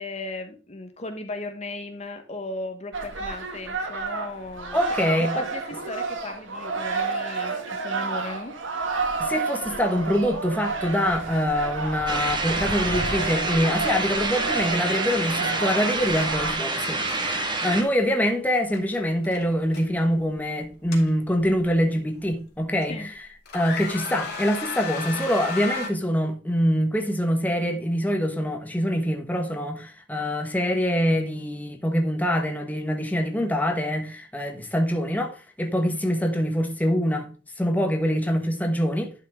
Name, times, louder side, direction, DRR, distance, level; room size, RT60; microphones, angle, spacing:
voice 1, 0.0-5.0 5.3-8.5 22.9-23.1, left 2 dB, 35° left, 1.2 m, -36 dB
sound 1, 2.9-16.5, right 4 dB, 85° right, 2.0 m, -30 dB
voice 2, 4.7-5.4 9.2-23.1 23.5-37.3 37.6-39.1, equal, 10° left, 1.3 m, -25 dB
sound 2, 12.1-17.8, right 2 dB, 25° right, 1.7 m, -27 dB
sound 3, 13.9-14.0 14.3-14.5 16.1-16.3 16.8-17.2 18.7-19.0 19.2-19.8 20.6-21.6 22.2-22.3 22.9-23.2 23.5-25.9, left 4 dB, 55° left, 2.7 m, -34 dB
11.0 x 5.6 x 3.6 m
head